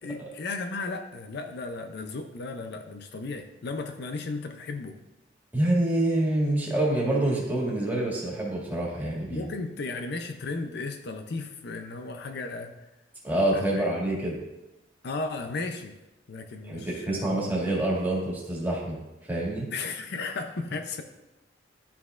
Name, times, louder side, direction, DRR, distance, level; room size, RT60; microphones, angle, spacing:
voice 1, 0.0-5.0 9.3-12.7 13.5-13.9 15.0-16.0 16.3-17.3 19.7-21.0, left 3 dB, 60° left, 6 dB, 0.5 m, -35 dB
voice 2, 5.5-9.5 13.2-14.4 16.6-19.7, right 1 dB, 10° right, -4 dB, 2.0 m, -27 dB
11.5 x 5.9 x 2.4 m, 0.99 s
head